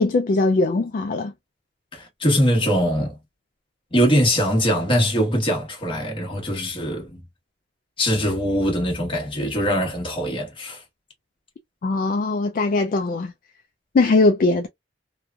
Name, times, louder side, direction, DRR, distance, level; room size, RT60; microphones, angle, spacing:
voice 1, 0.0-1.3 11.8-13.3 13.9-14.7, left 3 dB, 50° left, 0.3 m, -20 dB
voice 2, 1.9-3.2 3.9-7.2 8.0-10.8, equal, 30° left, 1.1 m, -22 dB
3.0 x 2.1 x 2.2 m
head